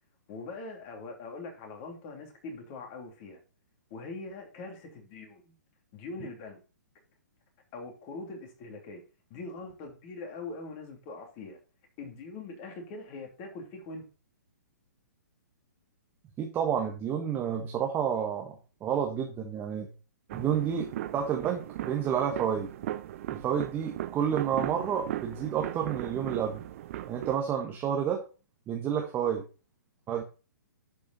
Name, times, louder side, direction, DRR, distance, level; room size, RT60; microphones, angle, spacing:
voice 1, 0.3-3.4 3.9-5.6 5.9-6.6 7.7-9.0 9.3-11.6 12.0-14.1, left 3 dB, 35° left, 3 dB, 2.9 m, -42 dB
voice 2, 16.4-19.9 20.3-22.7 23.3-26.6 27.1-28.2 28.7-29.4 30.1-30.2, right 8 dB, 20° right, 2 dB, 1.4 m, -30 dB
sound 1, 20.3-27.3, right 13 dB, 45° right, 0.8 m, -38 dB
11.0 x 5.4 x 4.1 m, 0.34 s
hypercardioid pair, 130°, 10 cm